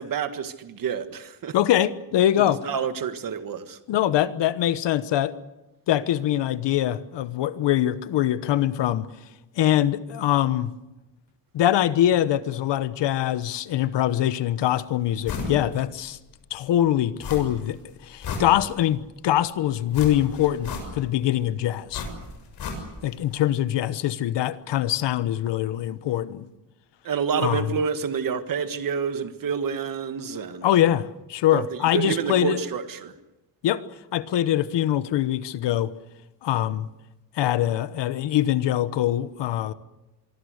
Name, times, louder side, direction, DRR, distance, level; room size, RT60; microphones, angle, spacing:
voice 1, 0.0-1.6 2.4-3.8 27.0-30.7 31.5-33.1, right 6 dB, 50° right, 1.8 m, -28 dB
voice 2, 1.5-2.6 3.9-5.3 5.9-9.1 9.6-10.7 11.5-16.2 16.5-17.8 18.0-22.1 23.0-26.5 27.4-27.7 30.6-32.6 33.6-33.8 34.1-35.9 36.4-36.9 37.4-39.7, left 12 dB, 85° left, 1.1 m, -23 dB
sound 1, 15.3-15.6 16.0-16.1 17.2-17.7 18.0-19.0 19.9-21.2 21.9-23.2 23.4-23.5, left 4 dB, 65° left, 6.7 m, -33 dB
25.5 x 23.5 x 6.6 m
cardioid pair, 165°, 42 cm